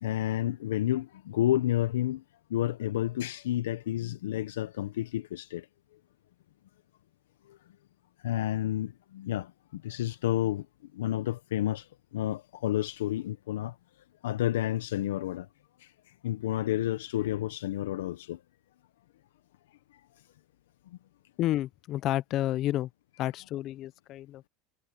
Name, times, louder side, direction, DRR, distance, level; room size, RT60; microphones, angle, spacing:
voice 1, 0.0-2.2 2.5-5.7 7.5-7.6 8.2-10.7 10.9-13.8 14.2-15.5 15.8-15.9 16.2-18.4 19.9-20.0 20.9-21.0, left 13 dB, 90° left, 0.9 m, -30 dB
voice 2, 21.4-22.9 23.2-24.5, left 14 dB, 50° left, 0.6 m, -30 dB
supercardioid pair, 105°, 0 cm